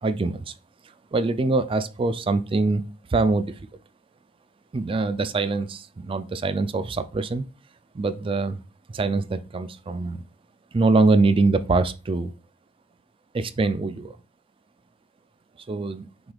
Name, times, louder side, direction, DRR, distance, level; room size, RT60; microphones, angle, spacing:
voice 1, 0.0-0.5 1.1-2.8 3.1-3.6 4.7-7.5 7.9-8.6 8.9-10.2 10.7-12.3 13.3-14.1 15.7-16.1, right 3 dB, 30° right, 0.4 m, -23 dB
6.0 x 3.4 x 2.4 m
head